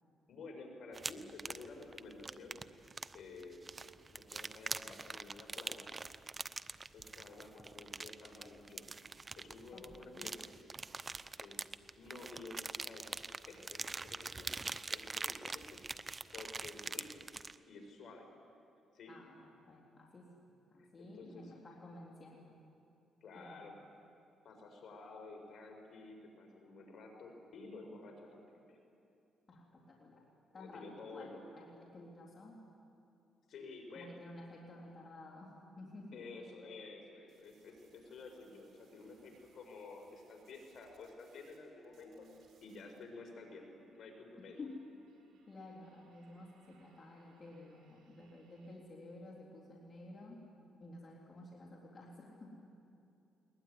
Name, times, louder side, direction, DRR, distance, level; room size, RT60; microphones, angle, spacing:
voice 1, 0.3-2.6 3.1-3.6 4.1-5.9 6.9-8.9 9.3-10.5 11.4-11.7 11.9-13.2 13.5-14.5 14.9-15.8 16.3-17.3 17.7-18.3 18.9-19.1 20.8-21.5 23.2-23.8 24.4-28.8 30.6-31.4 33.5-34.1 36.1-42.3 42.6-43.7 44.0-44.6, left 3 dB, 60° left, 3 dB, 5.2 m, -51 dB
sound 1, 0.9-17.6, right 3 dB, 30° right, 0.7 m, -44 dB
voice 2, 9.7-10.3 19.1-22.6 23.3-23.7 29.5-30.3 30.5-32.6 34.0-36.2 44.6-44.8 45.5-50.4 50.8-52.7, left 2 dB, 35° left, -2 dB, 3.6 m, -53 dB
sound 2, 37.3-41.6 41.8-43.0, right 5 dB, 65° right, 4.9 m, -72 dB
sound 3, 39.5-39.6 40.1-48.7, right 1 dB, 80° right, 7.1 m, -71 dB
21.5 x 20.5 x 9.7 m, 2.7 s
cardioid pair, 90°, 0 cm